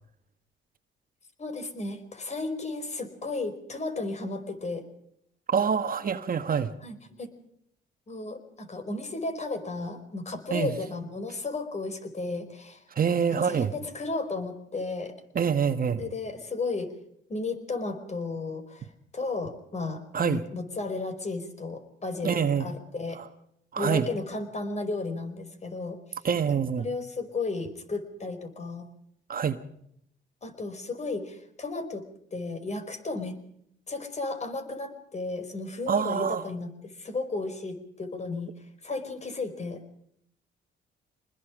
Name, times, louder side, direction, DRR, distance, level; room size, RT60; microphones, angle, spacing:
voice 1, 1.4-4.9 6.8-7.3 8.1-12.8 13.4-15.1 16.0-16.9 17.3-18.9 19.1-23.2 23.8-26.0 26.8-28.8 30.4-32.0 32.3-33.4 33.9-38.5 38.8-39.8, left 3 dB, 35° left, 5.1 m, -34 dB
voice 2, 5.5-6.7 10.5-10.7 12.9-13.7 15.3-16.0 20.1-20.4 22.2-22.7 23.2-23.3 23.7-24.1 26.2-26.9 29.3-29.6 35.9-36.5, right 7 dB, 45° right, 1.6 m, -26 dB
26.0 x 20.5 x 5.1 m
cardioid pair, 90°, 20 cm